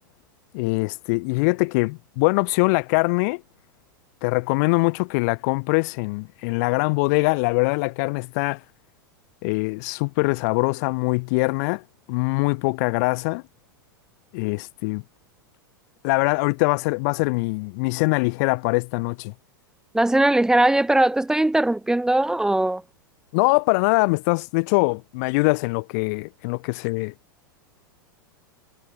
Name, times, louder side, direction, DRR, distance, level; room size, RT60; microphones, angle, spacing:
voice 1, 0.5-3.4 4.2-8.6 9.4-11.8 12.1-13.4 14.3-15.0 16.0-19.3 23.3-27.1, left 29 dB, 50° left, 0.7 m, -23 dB
voice 2, 19.9-22.8, right 1 dB, 5° right, 1.0 m, -20 dB
figure-of-eight pair, 90°, 12 cm